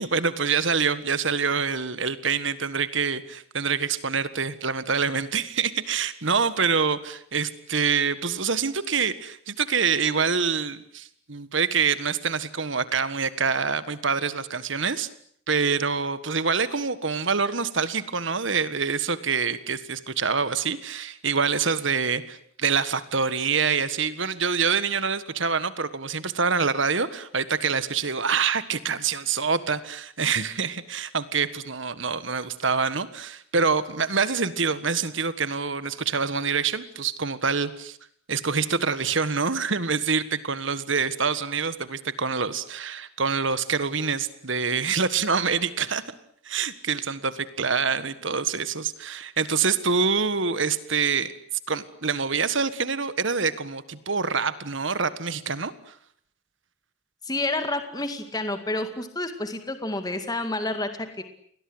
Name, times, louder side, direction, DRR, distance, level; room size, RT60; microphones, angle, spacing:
voice 1, 0.0-15.1 15.5-38.0 38.3-46.0 46.4-51.3 51.7-55.9, right 5 dB, 65° right, 14 dB, 1.6 m, -26 dB
voice 2, 57.2-61.2, left 2 dB, 20° left, 8 dB, 2.2 m, -29 dB
29.5 x 22.0 x 8.0 m, 0.63 s
head